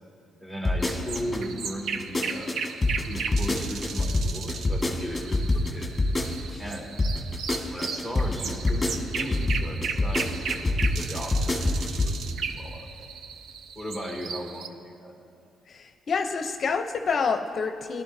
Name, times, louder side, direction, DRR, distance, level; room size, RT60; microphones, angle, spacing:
voice 1, 0.4-5.9 6.5-6.9 7.6-12.9 13.8-15.2, equal, 15° right, -1 dB, 2.1 m, -37 dB
sound 1, 0.6-1.4 1.8-6.7 7.0-12.2 12.5-12.6, left 2 dB, 15° left, 1.7 m, -25 dB
sound 2, 0.8-14.7, right 6 dB, 65° right, 0.6 m, -36 dB
voice 2, 15.7-18.0, left 5 dB, 50° left, 6 dB, 0.6 m, -28 dB
18.0 x 11.5 x 2.7 m, 2.4 s
cardioid pair, 90°, 0 cm